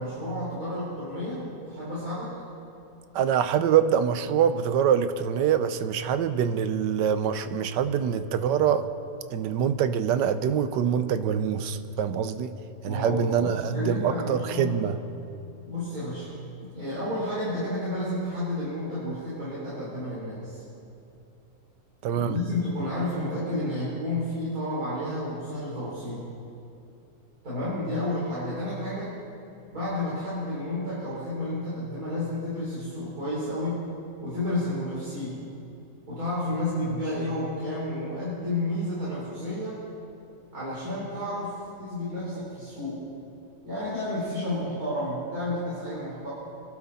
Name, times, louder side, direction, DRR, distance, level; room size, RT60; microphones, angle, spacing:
voice 1, 0.0-2.3 12.8-14.9 15.6-20.6 22.1-26.3 27.4-29.1 29.7-33.9 34.2-35.4 36.1-39.8 40.5-43.0 43.6-46.3, left 1 dB, 55° right, -10 dB, 4.7 m, -31 dB
voice 2, 3.1-8.9 9.3-12.5 12.8-15.0 22.0-22.4, right 8 dB, 75° right, 11 dB, 1.3 m, -25 dB
26.5 x 12.0 x 4.2 m, 2.7 s
omnidirectional pair, 1.9 m